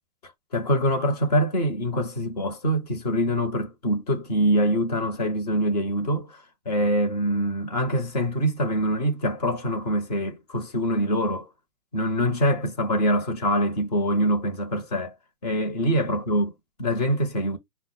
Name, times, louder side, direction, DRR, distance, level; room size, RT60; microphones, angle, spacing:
voice 1, 0.2-11.5 11.9-15.1 15.4-16.5 16.8-17.6, equal, 25° left, 0.7 m, -24 dB
5.5 x 2.1 x 4.0 m
hypercardioid pair, 145°, 47 cm